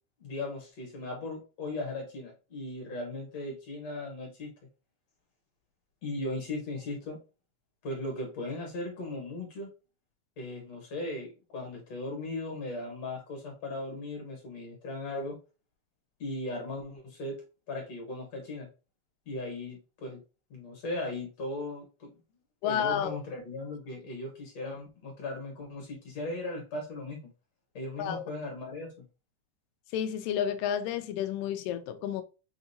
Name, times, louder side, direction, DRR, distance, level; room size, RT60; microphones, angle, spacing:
voice 1, 0.2-4.5 6.0-7.2 7.8-9.7 10.4-15.4 16.2-17.4 17.7-18.7 19.3-20.2 20.5-22.1 22.6-27.3 27.7-29.0, left 2 dB, 55° left, 2.4 m, -37 dB
voice 2, 22.6-23.2 28.0-28.2 29.9-32.2, left 9 dB, 90° left, 2.3 m, -30 dB
6.4 x 2.7 x 2.7 m
omnidirectional pair, 3.8 m